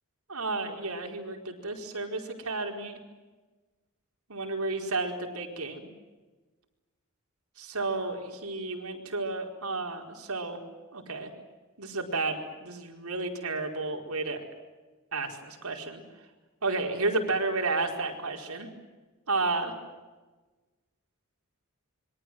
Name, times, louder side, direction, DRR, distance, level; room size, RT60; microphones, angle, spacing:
voice 1, 0.3-3.0 4.3-5.9 7.6-10.6 10.9-11.3 11.8-14.4 15.1-16.0 16.6-18.7 19.3-19.7, right 3 dB, 85° right, 2 dB, 4.8 m, -32 dB
27.0 x 23.5 x 7.8 m, 1.2 s
head